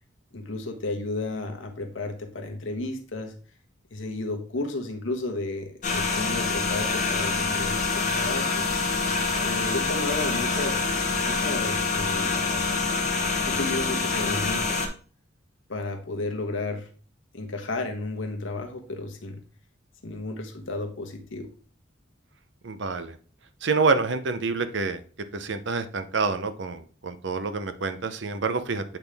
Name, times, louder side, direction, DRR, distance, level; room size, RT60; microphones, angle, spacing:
voice 1, 0.3-3.3 3.9-8.7 9.4-12.4 13.5-14.8 15.7-16.9 17.3-19.4 20.0-21.5, left 2 dB, 80° left, 4 dB, 1.2 m, -33 dB
sound 1, 5.8-14.9, left 4 dB, 40° left, 0.9 m, -26 dB
voice 2, 22.6-23.2 23.6-25.0 25.3-28.8, right 4 dB, 65° right, 10 dB, 0.6 m, -27 dB
8.2 x 3.6 x 3.4 m, 0.41 s
head